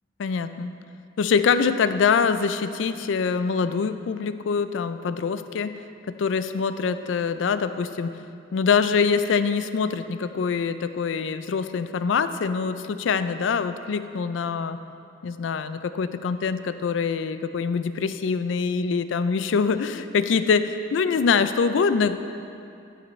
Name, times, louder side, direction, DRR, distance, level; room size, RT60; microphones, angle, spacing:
voice 1, 0.2-0.7 1.2-5.7 6.2-8.1 8.5-14.8 15.2-22.2, left 5 dB, 90° left, 11 dB, 0.4 m, -24 dB
13.0 x 6.5 x 3.2 m, 2.6 s
head